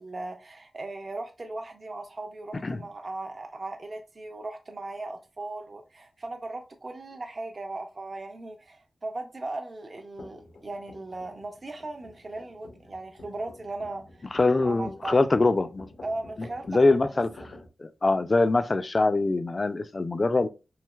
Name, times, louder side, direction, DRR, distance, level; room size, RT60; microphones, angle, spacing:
voice 1, 0.0-15.2 16.0-17.1, right 2 dB, 40° right, 0.4 m, -38 dB
sound 1, 10.2-17.7, left 2 dB, 80° left, 0.7 m, -49 dB
voice 2, 14.3-15.9 16.4-17.3 17.8-20.5, left 3 dB, 40° left, 0.3 m, -23 dB
3.1 x 2.8 x 2.2 m
wide cardioid pair, 85°, 0 cm